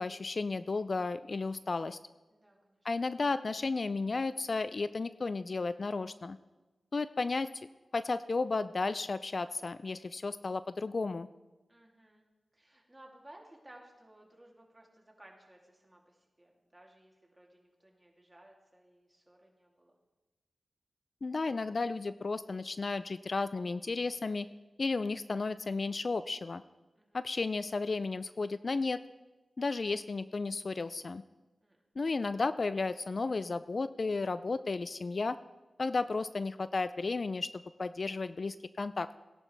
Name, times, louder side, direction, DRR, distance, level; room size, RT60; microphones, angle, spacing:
voice 1, 0.0-2.0 2.8-6.4 6.9-7.5 7.9-11.3 21.2-24.5 24.8-26.6 27.1-29.0 29.6-31.2 32.0-35.4 35.8-39.1, left 3 dB, 50° left, 14 dB, 0.3 m, -33 dB
voice 2, 2.3-2.9 11.7-12.2 12.5-20.0 26.9-27.2 31.6-31.8, right 1 dB, 15° right, -1 dB, 2.9 m, -58 dB
17.5 x 10.5 x 3.4 m, 1.2 s
cardioid pair, 60°, 0 cm